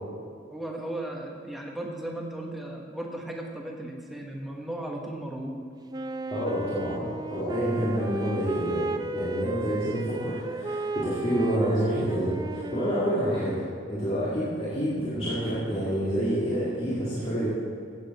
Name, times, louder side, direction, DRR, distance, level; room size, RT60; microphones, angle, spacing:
voice 1, 0.5-5.6, right 1 dB, ahead, -1 dB, 1.2 m, -36 dB
Wind instrument woodwind instrument, 5.9-13.9, right 2 dB, 20° right, 0.4 m, -35 dB
voice 2, 6.3-13.6 13.9-17.5, equal, 30° left, -10 dB, 2.2 m, -28 dB
15.5 x 7.6 x 4.2 m, 2.5 s
head